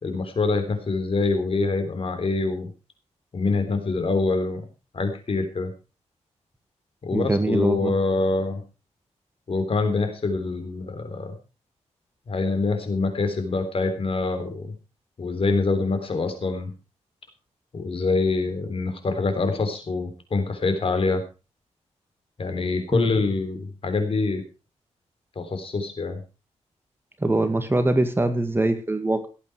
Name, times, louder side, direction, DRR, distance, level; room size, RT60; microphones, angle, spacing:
voice 1, 0.0-2.7 3.3-4.6 4.9-5.7 7.0-8.6 9.5-11.3 12.3-14.7 15.2-16.7 17.7-21.2 22.4-24.4 25.4-26.2, left 3 dB, 50° left, 8 dB, 3.6 m, -25 dB
voice 2, 7.1-7.9 22.9-23.1 27.2-29.3, right 2 dB, 20° right, 8 dB, 2.0 m, -23 dB
17.5 x 8.6 x 4.9 m, 0.32 s
wide cardioid pair, 105°, 12 cm